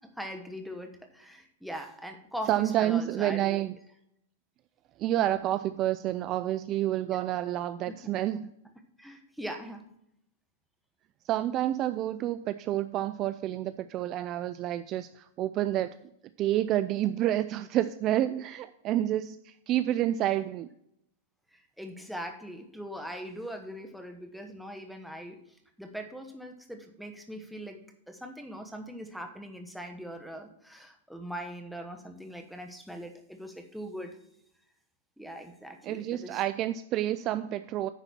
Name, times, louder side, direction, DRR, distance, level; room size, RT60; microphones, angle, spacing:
voice 1, 0.0-3.6 7.1-7.2 7.9-8.1 9.0-9.9 18.3-18.4 21.5-27.8 28.1-34.2 35.2-36.4, equal, ahead, 4 dB, 1.1 m, -41 dB
voice 2, 2.5-3.7 5.0-8.5 11.2-16.0 16.4-20.7 35.8-37.9, right 13 dB, 35° right, 12 dB, 0.3 m, -29 dB
10.0 x 4.1 x 6.9 m, 0.76 s
hypercardioid pair, 140°, 0 cm